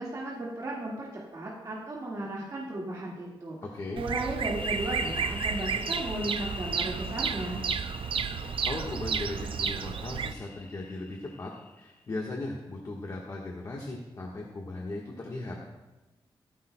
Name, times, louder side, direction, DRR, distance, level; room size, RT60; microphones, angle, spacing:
voice 1, 0.0-3.6 3.9-7.6, right 1 dB, 45° right, -5 dB, 1.8 m, -35 dB
voice 2, 3.6-4.0 8.3-11.5 11.8-15.6, left 2 dB, 40° left, -2 dB, 1.3 m, -37 dB
Bird vocalization bird call bird song, 4.0-10.3, right 6 dB, 70° right, 0.5 m, -32 dB
sound 1, 4.4-11.9, left 3 dB, 20° left, 0.4 m, -42 dB
16.0 x 14.0 x 2.2 m, 1.1 s
wide cardioid pair, 175°, 9 cm